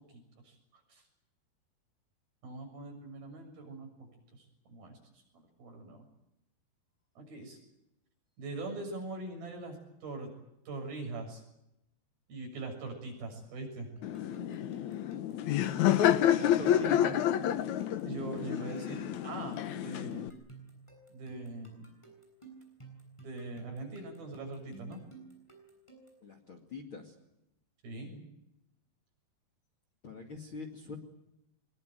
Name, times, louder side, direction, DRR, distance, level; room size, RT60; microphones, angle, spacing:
voice 1, 0.1-0.6 0.9-1.0 2.4-5.0 5.3-6.0 7.2-7.6 8.4-10.3 10.7-11.4 12.3-13.9 18.0-20.3 21.1-21.9 23.2-25.0 27.8-28.2, right 2 dB, 60° right, 3 dB, 8.6 m, -42 dB
Laughter, 14.0-20.3, left 11 dB, 70° left, 1.8 m, -29 dB
sound 1, 14.0-26.3, right 4 dB, 5° left, 7.0 m, -54 dB
voice 2, 16.3-17.2 26.2-27.1 30.0-31.0, left 3 dB, 35° left, 5 dB, 2.5 m, -42 dB
24.5 x 22.0 x 9.4 m, 0.86 s
omnidirectional pair, 4.7 m